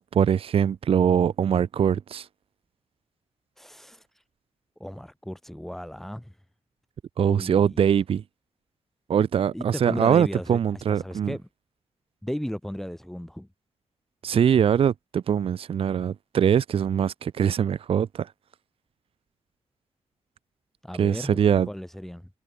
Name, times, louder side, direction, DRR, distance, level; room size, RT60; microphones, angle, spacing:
voice 1, 0.0-2.3 7.2-8.2 9.1-11.3 14.2-18.3 21.0-21.7, right 8 dB, 55° right, 0.7 m, -22 dB
voice 2, 3.6-4.2 4.8-6.4 7.3-7.8 9.5-11.4 12.2-13.5 20.8-21.4 21.7-22.3, equal, 5° left, 3.7 m, -35 dB
wide cardioid pair, 165°, 12 cm